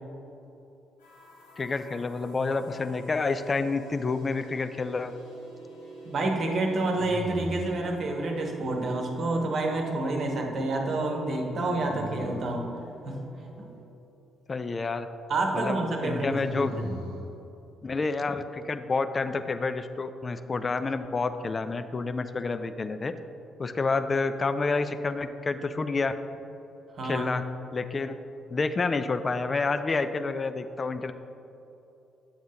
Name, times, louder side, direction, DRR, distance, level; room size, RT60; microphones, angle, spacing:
sound 1, 1.0-13.8, right 2 dB, 75° left, 1.4 m, -46 dB
voice 1, 1.6-5.1 14.5-15.1 15.5-16.7 17.8-23.1 23.6-26.1 27.0-27.4 27.7-28.1 28.5-31.1, left 3 dB, 30° left, 10 dB, 0.4 m, -29 dB
sound 2, 4.2-4.9 6.9-7.9 11.6-12.7 16.0-17.3, equal, 75° right, 0.9 m, -38 dB
voice 2, 6.0-12.7 13.0-13.2 13.6-13.7 15.3-16.9 27.0-27.3, right 2 dB, 45° right, 2 dB, 1.0 m, -28 dB
8.7 x 7.3 x 2.9 m, 3.0 s
figure-of-eight pair, 40°, 0 cm